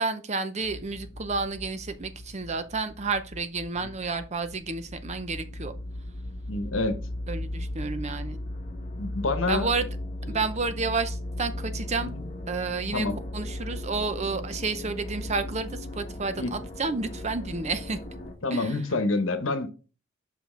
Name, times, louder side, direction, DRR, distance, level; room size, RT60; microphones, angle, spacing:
voice 1, 0.0-5.7 7.3-8.4 9.5-9.9 10.3-12.1 12.5-13.1 13.3-18.0 18.5-18.8, right 4 dB, 35° right, 0.6 m, -30 dB
sound 1, 0.6-18.3, left 1 dB, 40° left, 1.2 m, -37 dB
voice 2, 6.5-7.0 9.0-9.7 10.3-10.4 12.0-12.2 12.9-13.2 16.4-16.5 18.4-19.7, left 2 dB, 75° left, 1.0 m, -27 dB
6.0 x 5.1 x 3.8 m
head